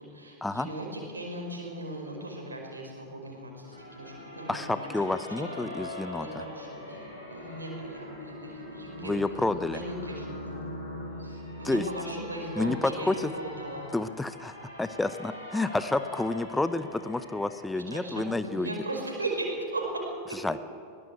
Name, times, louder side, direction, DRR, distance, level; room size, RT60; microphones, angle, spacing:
voice 1, 0.0-4.9 5.4-5.6 6.2-9.1 9.7-10.6 11.2-13.9 17.9-20.0, right 2 dB, 75° right, 0 dB, 5.0 m, -37 dB
sound 1, 3.7-17.6, left 1 dB, 80° left, 7.4 m, -42 dB
voice 2, 4.5-6.4 9.0-9.8 11.6-11.8 12.6-13.3 13.9-18.7 20.4-20.6, left 2 dB, 5° left, 13 dB, 0.8 m, -29 dB
21.5 x 18.0 x 8.1 m, 2.3 s
figure-of-eight pair, 90°, 0 cm